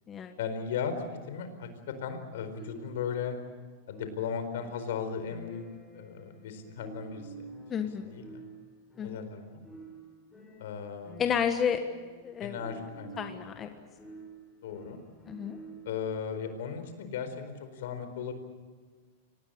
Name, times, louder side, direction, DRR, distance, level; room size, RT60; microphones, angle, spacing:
voice 1, 0.4-0.9 1.3-3.4 3.9-5.6 5.9-7.5 8.0-8.4 9.0-9.6 10.6-11.2 12.4-13.3 14.6-15.0 15.8-18.3, left 7 dB, 75° left, 9 dB, 4.5 m, -36 dB
sound 1, 2.5-16.1, right 3 dB, 10° left, 5.6 m, -50 dB
voice 2, 7.7-8.1 9.0-9.2 11.2-11.8 12.2-12.6 13.2-13.7 15.3-15.6, left 7 dB, 25° left, 6 dB, 1.5 m, -31 dB
25.0 x 19.0 x 8.7 m, 1.5 s
supercardioid pair, 135°, 0 cm